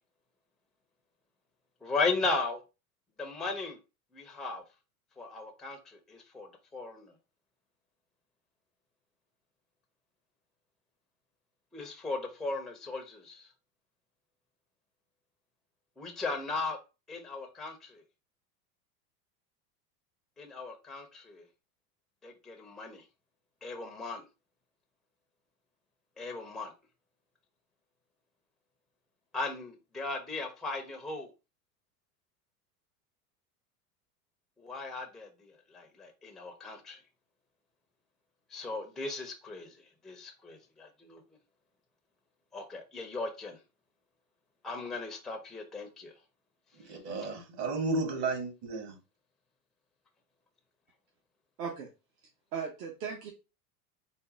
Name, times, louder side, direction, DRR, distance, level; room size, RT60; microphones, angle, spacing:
voice 1, 1.8-2.6 3.2-3.8 4.1-4.6 5.2-7.1 11.7-13.5 16.0-16.8 17.1-18.0 20.4-21.4 22.2-23.0 23.6-24.2 26.2-26.7 29.3-31.3 34.6-37.0 38.5-39.8 40.0-41.2 42.5-43.6 44.6-46.1, left 3 dB, ahead, 0.4 m, -37 dB
voice 2, 46.9-48.9, right 3 dB, 60° right, 1.8 m, -33 dB
voice 3, 51.6-51.9 52.5-53.3, right 6 dB, 80° right, 1.1 m, -37 dB
4.0 x 2.1 x 3.8 m
supercardioid pair, 115°, 46 cm